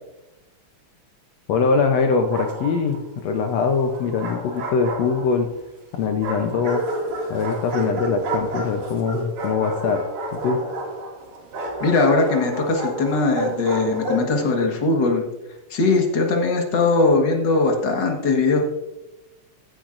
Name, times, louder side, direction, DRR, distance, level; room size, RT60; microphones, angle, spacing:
voice 1, 1.5-5.5 5.9-6.8 7.3-10.0 10.3-10.6, left 5 dB, 70° left, 5 dB, 1.6 m, -22 dB
Bark, 2.1-3.0 3.9-5.5 6.2-14.3, right 1 dB, 85° right, 3.9 m, -30 dB
voice 2, 11.8-15.2 15.7-18.6, left 3 dB, 45° left, 2 dB, 1.6 m, -20 dB
14.5 x 10.0 x 2.5 m, 1.0 s
omnidirectional pair, 3.7 m